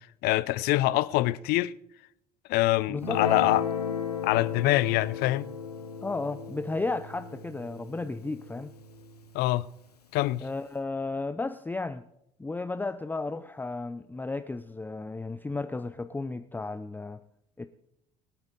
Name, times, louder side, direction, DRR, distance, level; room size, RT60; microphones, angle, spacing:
voice 1, 0.2-1.7 2.5-3.7 4.2-5.5 9.3-9.7 10.1-10.4, left 17 dB, 55° left, 0.6 m, -25 dB
voice 2, 2.9-3.2 6.0-8.7 10.4-12.1 12.4-17.2 17.6-17.7, left 3 dB, 10° left, 0.6 m, -34 dB
Guitar, 3.0-9.6, left 6 dB, 90° left, 1.0 m, -35 dB
23.5 x 8.8 x 3.9 m
figure-of-eight pair, 65°, 19 cm